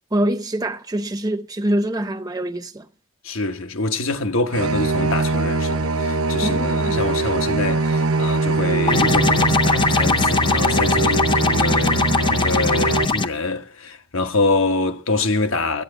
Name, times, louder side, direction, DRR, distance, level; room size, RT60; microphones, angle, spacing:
voice 1, 0.1-2.9 6.4-7.0, right 1 dB, 15° right, 0.6 m, -24 dB
voice 2, 3.2-15.8, left 3 dB, 70° left, 1.2 m, -25 dB
sound 1, 4.5-13.0, right 3 dB, 90° right, 0.9 m, -22 dB
sound 2, 8.9-13.3, left 3 dB, 25° left, 0.6 m, -20 dB
13.0 x 8.6 x 7.9 m
head